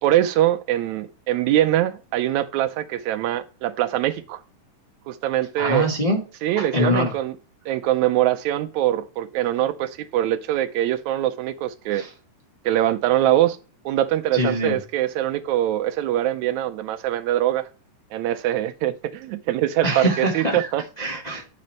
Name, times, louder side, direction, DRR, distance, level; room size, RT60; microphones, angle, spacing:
voice 1, 0.0-4.4 5.1-5.9 6.4-7.3 7.6-12.1 12.6-13.6 13.8-17.7 18.1-20.8, right 13 dB, 80° right, 1.7 m, -23 dB
voice 2, 5.6-6.2 6.6-7.1 11.9-12.1 14.3-14.8 19.8-20.7 21.0-21.5, equal, 45° left, 0.5 m, -23 dB
8.4 x 5.3 x 4.4 m
omnidirectional pair, 3.8 m